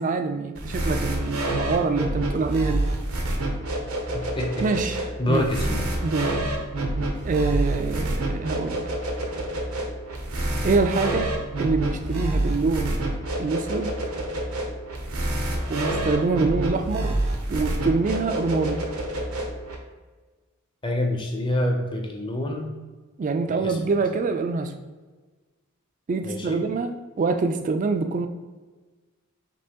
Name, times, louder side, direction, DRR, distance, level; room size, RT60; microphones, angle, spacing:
voice 1, 0.0-2.9 4.6-5.0 5.3-5.5 6.0-6.4 7.2-8.8 10.6-11.3 11.6-13.0 13.4-13.9 15.7-17.2 17.5-18.8 23.2-24.7 26.1-28.3, right 4 dB, 35° right, 7 dB, 0.3 m, -25 dB
sound 1, 0.6-19.8, right 1 dB, 80° right, 0.7 m, -28 dB
voice 2, 4.1-5.9 20.8-22.7 23.5-23.8 26.2-26.6, left 1 dB, 20° left, 1 dB, 0.6 m, -27 dB
5.3 x 3.0 x 2.8 m, 1.3 s
head